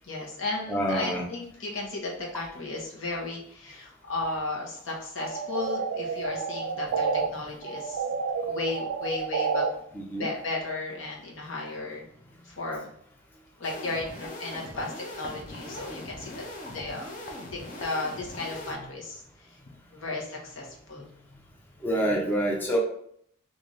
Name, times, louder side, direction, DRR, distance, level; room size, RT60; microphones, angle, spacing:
voice 1, 0.0-8.0 8.5-9.6 10.1-12.0 12.4-12.9 13.6-16.4 16.7-17.0 17.5-19.6 19.9-21.1, left 2 dB, 75° left, -2 dB, 1.0 m, -34 dB
voice 2, 0.7-1.2 7.2-7.3 9.9-10.3 21.8-22.8, right 1 dB, 10° left, -3 dB, 0.5 m, -27 dB
sound 1, 5.2-7.3 7.6-9.7, right 5 dB, 85° right, 0.3 m, -29 dB
sound 2, 13.6-18.7, left 1 dB, 40° left, 0.8 m, -40 dB
3.8 x 2.6 x 3.1 m, 0.69 s
head